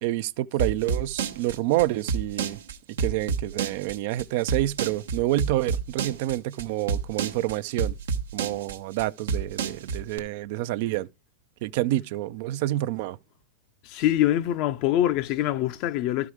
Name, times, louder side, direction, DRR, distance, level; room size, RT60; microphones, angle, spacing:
voice 1, 0.0-2.6 2.9-8.0 8.3-11.1 11.6-13.2, right 15 dB, 60° right, 0.5 m, -28 dB
sound 1, 0.6-10.2, right 6 dB, 80° right, 1.0 m, -28 dB
voice 2, 13.9-16.3, left 13 dB, 50° left, 0.6 m, -24 dB
12.0 x 4.8 x 4.9 m
hypercardioid pair, 110°, 0 cm